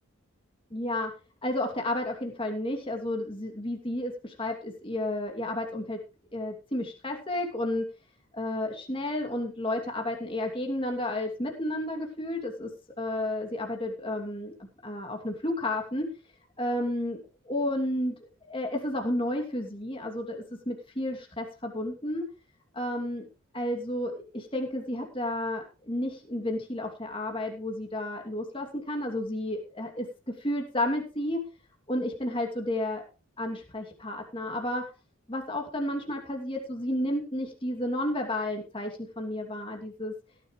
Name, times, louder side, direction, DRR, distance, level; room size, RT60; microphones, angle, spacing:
voice 1, 0.7-1.1 1.4-6.0 6.3-7.9 8.3-12.7 13.0-16.1 16.6-17.2 17.4-22.3 22.7-23.2 23.5-31.4 31.9-33.0 33.4-34.9 35.3-40.1, left 1 dB, 25° left, 2 dB, 2.7 m, -32 dB
17.0 x 11.0 x 3.2 m, 0.32 s
head